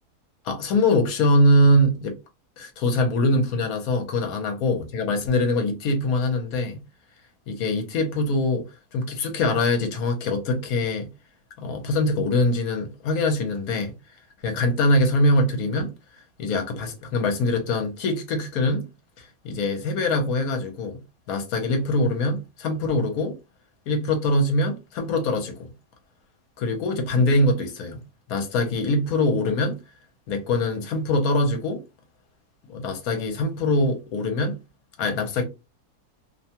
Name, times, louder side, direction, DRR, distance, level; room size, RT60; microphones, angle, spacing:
voice 1, 0.4-2.1 2.6-6.8 7.5-8.6 8.9-11.1 11.6-13.9 14.4-15.9 16.4-18.9 19.2-21.0 21.3-23.4 23.9-25.5 26.6-28.0 28.3-29.8 30.3-31.8 32.7-34.6 35.0-35.4, left 1 dB, 70° left, 1.2 m, -23 dB
2.7 x 2.2 x 2.8 m
omnidirectional pair, 1.6 m